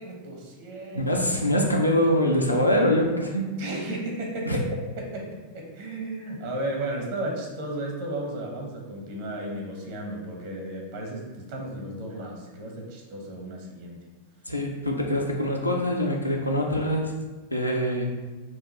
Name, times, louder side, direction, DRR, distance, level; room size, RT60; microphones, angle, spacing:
voice 1, 0.0-1.1 3.6-14.0, right 1 dB, 55° right, -1 dB, 1.1 m, -34 dB
voice 2, 0.9-3.4 4.5-4.6 14.5-17.2 17.5-18.1, equal, 90° left, 0 dB, 0.6 m, -24 dB
6.0 x 2.4 x 3.0 m, 1.2 s
figure-of-eight pair, 90°, 0 cm